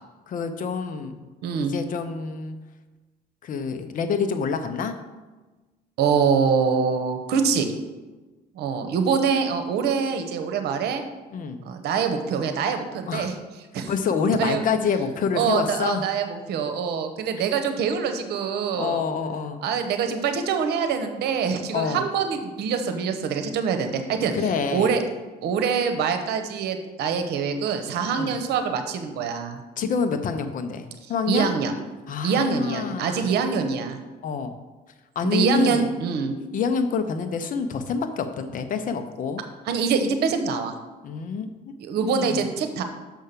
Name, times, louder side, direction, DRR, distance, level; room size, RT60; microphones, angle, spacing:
voice 1, 0.3-1.2 1.7-2.6 3.4-5.0 11.3-11.6 13.1-13.3 13.9-16.0 18.7-19.6 21.7-22.0 24.3-24.9 28.2-28.4 29.8-31.5 32.1-33.3 34.2-34.6 35.1-35.9 36.5-39.4 41.0-41.5 42.0-42.4, left 5 dB, 50° left, 8 dB, 0.9 m, -27 dB
voice 2, 1.4-1.7 6.0-7.7 8.5-11.0 11.6-13.3 13.7-13.9 14.4-14.7 15.3-19.0 19.6-24.3 24.7-25.0 25.4-29.6 31.3-31.7 32.2-34.0 35.2-36.3 39.6-40.7 41.8-42.8, right 6 dB, 75° right, 7 dB, 1.0 m, -24 dB
6.3 x 5.7 x 6.8 m, 1.2 s
cardioid pair, 110°, 17 cm